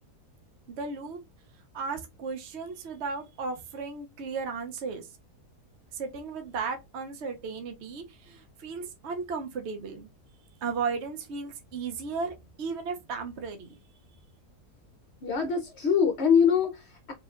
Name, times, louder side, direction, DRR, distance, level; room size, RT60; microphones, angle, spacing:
voice 1, 0.7-1.2 1.7-5.1 5.9-10.1 10.6-13.8, right 5 dB, 60° right, 0.8 m, -35 dB
voice 2, 15.2-17.1, left 7 dB, 55° left, 0.9 m, -24 dB
4.9 x 2.9 x 2.4 m
omnidirectional pair, 1.7 m